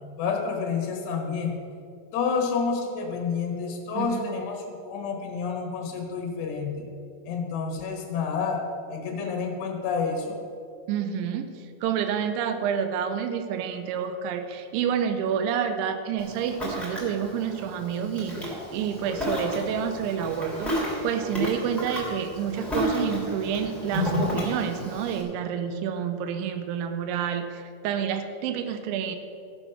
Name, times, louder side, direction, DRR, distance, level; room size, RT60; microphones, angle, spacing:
voice 1, 0.2-1.6 2.1-6.8 7.3-8.6 8.9-10.4, left 5 dB, 70° left, 2 dB, 3.2 m, -29 dB
voice 2, 3.9-4.3 10.9-11.5 11.8-29.2, right 8 dB, 85° right, 8 dB, 2.9 m, -29 dB
Ocean, 16.2-25.2, left 1 dB, ahead, 1.7 m, -32 dB
14.0 x 7.2 x 5.8 m, 2.5 s
omnidirectional pair, 5.8 m